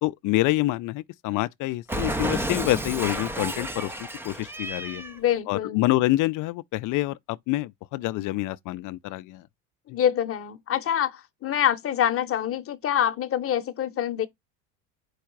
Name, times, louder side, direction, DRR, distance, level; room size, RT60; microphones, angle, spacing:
voice 1, 0.0-3.9 4.2-5.0 5.5-9.4, left 18 dB, 50° left, 0.5 m, -26 dB
Cat, 1.9-5.2, right 1 dB, 5° right, 0.4 m, -31 dB
voice 2, 4.8-5.9 9.9-14.3, left 10 dB, 35° left, 0.8 m, -26 dB
4.8 x 2.4 x 4.5 m
supercardioid pair, 95°, 39 cm